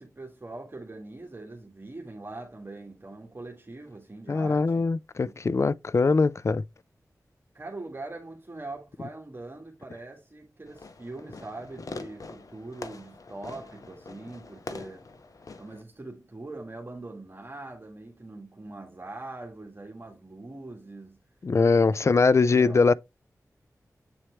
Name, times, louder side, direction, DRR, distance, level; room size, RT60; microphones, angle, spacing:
voice 1, 0.0-4.8 5.2-5.3 7.5-15.1 15.6-21.2 21.9-22.1 22.5-22.8, right 2 dB, 35° right, 1.8 m, -42 dB
voice 2, 4.3-6.6 21.4-22.9, left 4 dB, 50° left, 0.3 m, -22 dB
Fireworks, 10.7-15.8, left 3 dB, 65° left, 0.9 m, -43 dB
8.3 x 4.3 x 3.2 m
cardioid pair, 50°, 6 cm